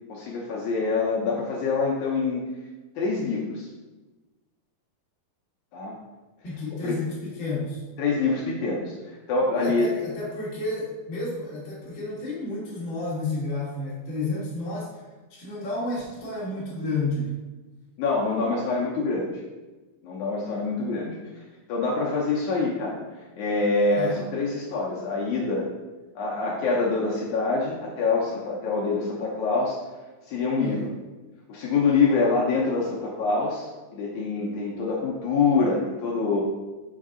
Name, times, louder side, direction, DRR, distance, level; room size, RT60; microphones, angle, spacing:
voice 1, 0.1-2.4 3.0-3.7 5.7-6.0 6.8-7.0 8.0-9.9 18.0-19.4 20.0-21.4 21.7-25.7 26.1-29.8 30.3-30.9 31.5-36.4, left 4 dB, 80° left, -3 dB, 1.7 m, -25 dB
voice 2, 6.4-7.8 9.6-14.9 15.3-17.4 24.0-24.1 30.6-30.8, left 2 dB, 50° left, -8 dB, 1.4 m, -31 dB
5.8 x 5.4 x 3.7 m, 1.2 s
omnidirectional pair, 4.4 m